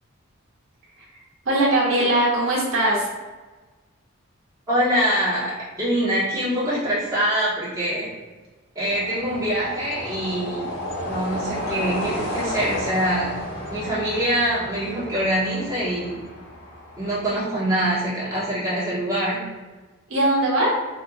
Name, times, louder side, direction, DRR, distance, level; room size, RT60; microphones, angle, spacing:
voice 1, 1.4-3.1 20.1-20.7, right 1 dB, 75° right, -6 dB, 1.2 m, -20 dB
voice 2, 4.7-5.5 5.8-8.1 8.7-10.7 11.0-13.3 13.7-16.1 17.0-19.4, equal, 15° right, -10 dB, 1.3 m, -24 dB
sound 1, 8.8-17.4, left 1 dB, 70° left, 1.3 m, -32 dB
4.4 x 2.5 x 2.4 m, 1.3 s
head